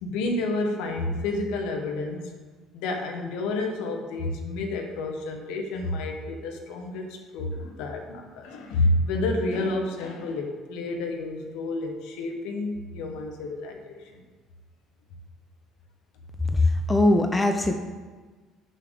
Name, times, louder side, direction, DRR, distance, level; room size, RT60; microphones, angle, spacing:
voice 1, 0.0-2.3 2.7-14.2, left 2 dB, 65° left, 3 dB, 1.1 m, -29 dB
voice 2, 16.5-17.7, left 2 dB, 20° left, 6 dB, 0.7 m, -21 dB
6.6 x 5.7 x 6.5 m, 1.3 s
figure-of-eight pair, 55°, 0 cm